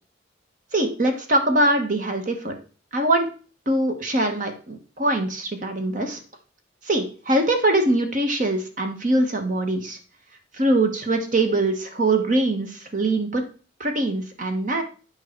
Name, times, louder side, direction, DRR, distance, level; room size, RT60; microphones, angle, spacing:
voice 1, 0.7-2.6 2.9-3.3 3.7-6.2 6.8-10.0 10.5-13.5 13.8-14.8, right 2 dB, 40° right, 6 dB, 1.2 m, -22 dB
8.8 x 4.8 x 4.4 m, 0.38 s
head